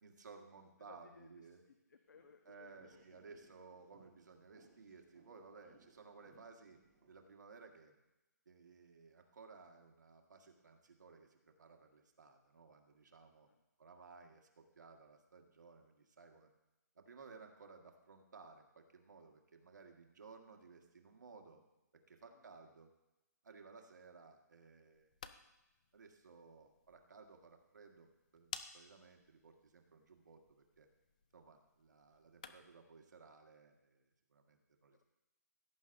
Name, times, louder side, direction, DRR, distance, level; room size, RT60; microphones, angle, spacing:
voice 1, 0.0-1.6 2.5-6.8 7.1-8.0 8.5-13.5 13.8-16.5 17.0-21.6 22.1-22.9 23.4-25.1 25.9-30.9 31.3-35.0, right 4 dB, 75° right, 3 dB, 1.7 m, -59 dB
voice 2, 0.8-3.2 5.6-5.9 13.2-13.6 22.3-22.6 34.9-35.0, left 5 dB, 90° left, 5 dB, 1.0 m, -64 dB
sound 1, 2.1-7.3, right 4 dB, 25° right, 1.7 m, -69 dB
sound 2, 24.9-32.9, left 6 dB, 25° left, 0.4 m, -56 dB
17.0 x 9.8 x 2.6 m, 0.98 s
hypercardioid pair, 175°, 10 cm